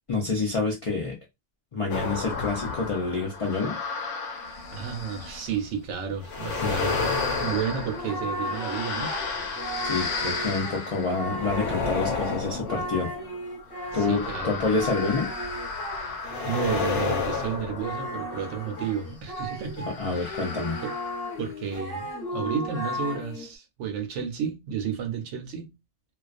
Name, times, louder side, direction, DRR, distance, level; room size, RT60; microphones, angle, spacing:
voice 1, 0.1-1.2 1.7-3.8 6.6-6.8 9.8-13.1 13.9-15.3 19.9-20.8, left 4 dB, 50° left, 0.4 m, -28 dB
sound 1, 1.9-5.6 6.2-19.0 19.8-21.4 21.7-21.8, left 4 dB, 80° left, 0.9 m, -32 dB
voice 2, 4.7-7.1 7.4-9.2 13.9-14.6 15.9-20.4 20.8-20.9 21.4-25.7, right 7 dB, 75° right, 0.9 m, -32 dB
Singing, 6.9-20.0 20.3-23.5, equal, 25° left, 0.8 m, -36 dB
2.3 x 2.2 x 2.4 m
omnidirectional pair, 1.2 m